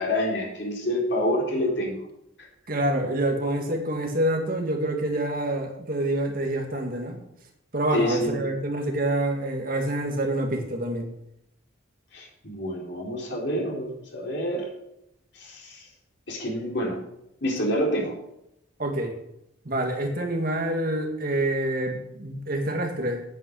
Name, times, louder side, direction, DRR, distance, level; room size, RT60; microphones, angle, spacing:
voice 1, 0.0-2.0 7.9-8.4 12.1-14.7 15.3-15.9 16.3-17.0 17.4-18.2, equal, 55° left, -1 dB, 3.6 m, -27 dB
voice 2, 2.7-7.2 7.7-11.1 18.8-19.2 19.7-23.2, right 1 dB, 45° right, 3 dB, 2.0 m, -27 dB
9.3 x 8.7 x 6.4 m, 0.81 s
head